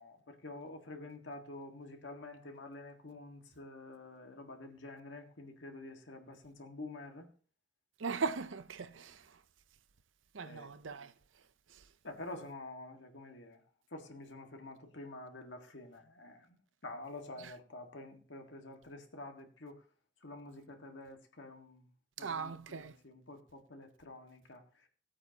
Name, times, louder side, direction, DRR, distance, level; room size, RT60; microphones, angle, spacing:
voice 1, 0.0-7.3 10.4-10.7 12.0-13.6 13.9-16.6 16.8-19.8 20.2-21.8 22.2-24.6, left 2 dB, 70° left, 1.8 m, -48 dB
voice 2, 8.0-9.4 10.3-11.1 11.7-11.8 17.4-17.5 22.2-23.0, right 5 dB, 85° right, 0.7 m, -39 dB
17.0 x 8.6 x 2.9 m
head